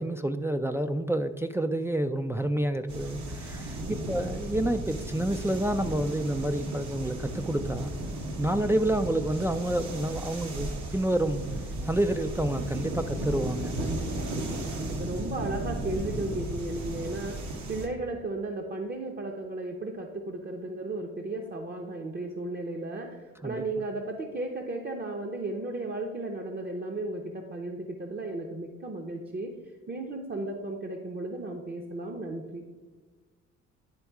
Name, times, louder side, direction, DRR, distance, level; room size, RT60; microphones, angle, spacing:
voice 1, 0.0-7.9 8.4-11.4 11.8-13.8 23.4-23.6, right 1 dB, 10° right, 6 dB, 0.3 m, -29 dB
sound 1, 2.9-17.9, right 1 dB, 70° right, 1.3 m, -35 dB
voice 2, 13.8-29.5 29.9-32.7, right 2 dB, 35° right, 2 dB, 0.8 m, -35 dB
10.5 x 3.5 x 4.7 m, 1.4 s
cardioid pair, 90°, 30 cm